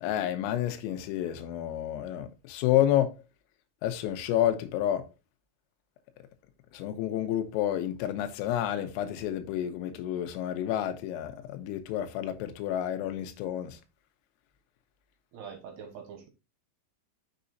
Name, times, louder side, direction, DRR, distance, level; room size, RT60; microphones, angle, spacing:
voice 1, 0.0-3.1 3.8-5.0 6.7-13.7, left 11 dB, 85° left, 3.6 m, -29 dB
voice 2, 15.3-16.3, right 6 dB, 70° right, 2.8 m, -44 dB
7.4 x 7.0 x 2.6 m
omnidirectional pair, 5.9 m